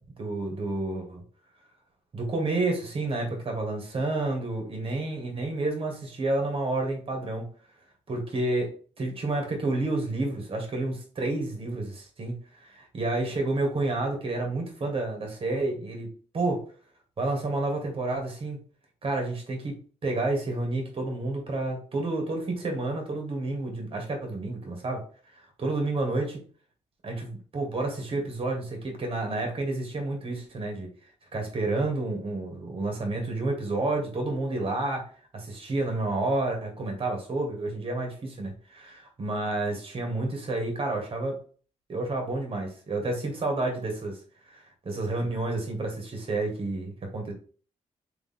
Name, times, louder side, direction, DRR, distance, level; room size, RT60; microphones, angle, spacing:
voice 1, 0.2-1.2 2.1-7.5 8.1-16.7 17.2-18.6 19.0-25.1 25.6-26.4 27.0-30.9 31.3-41.4 41.9-44.2 44.5-47.3, right 2 dB, 45° right, 2 dB, 1.9 m, -30 dB
3.6 x 3.5 x 3.6 m, 0.40 s
cardioid pair, 75°, 13 cm